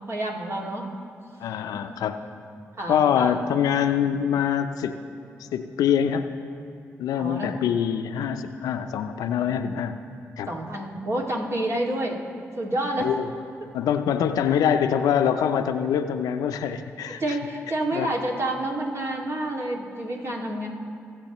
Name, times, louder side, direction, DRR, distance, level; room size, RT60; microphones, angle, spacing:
voice 1, 0.1-0.9 1.4-1.8 2.2-2.4 2.8-3.4 4.0-4.1 7.1-7.6 10.5-12.2 12.6-13.1 17.2-20.7, right 1 dB, 45° right, -1 dB, 2.2 m, -29 dB
voice 2, 1.4-2.2 2.9-5.0 5.5-6.3 7.0-10.0 10.4-10.5 13.0-13.3 13.7-17.2 17.9-18.1, left 8 dB, 80° left, 8 dB, 0.5 m, -24 dB
21.0 x 7.7 x 3.0 m, 2.4 s
supercardioid pair, 40°, 6 cm